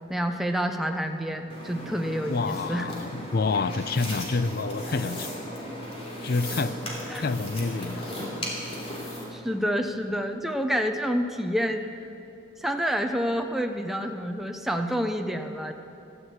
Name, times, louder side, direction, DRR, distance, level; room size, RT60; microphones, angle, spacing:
voice 1, 0.1-2.9 7.1-7.2 9.3-11.9 12.6-15.7, equal, ahead, 4 dB, 0.6 m, -28 dB
sound 1, 1.5-9.2, left 1 dB, 30° left, 3.3 m, -36 dB
voice 2, 2.3-5.4 6.2-6.8 7.2-8.1, left 3 dB, 50° left, 14 dB, 0.5 m, -28 dB
14.5 x 12.0 x 8.1 m, 2.7 s
head